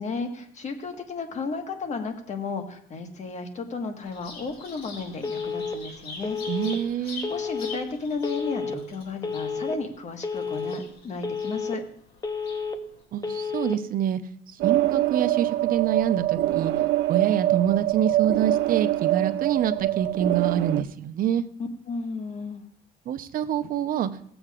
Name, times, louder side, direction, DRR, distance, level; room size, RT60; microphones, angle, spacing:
voice 1, 0.0-11.8 21.6-22.6, left 4 dB, 45° left, 4 dB, 1.5 m, -34 dB
Bird vocalization bird call bird song, 4.0-13.0, left 3 dB, 85° left, 3.4 m, -44 dB
Telephone, 5.2-5.8 6.2-6.8 7.2-7.8 8.2-8.8 9.2-9.8 10.2-10.8 11.2-11.8 12.2-12.8 13.2-13.8, left 5 dB, 20° left, 0.9 m, -30 dB
voice 2, 6.5-7.3 13.1-14.2 14.6-16.7 17.1-21.4 23.1-24.1, right 9 dB, 55° right, 10 dB, 0.8 m, -26 dB
sound 1, 14.6-20.8, right 16 dB, 80° right, 0.4 m, -24 dB
17.0 x 7.9 x 2.5 m, 0.64 s
cardioid pair, 110°, 17 cm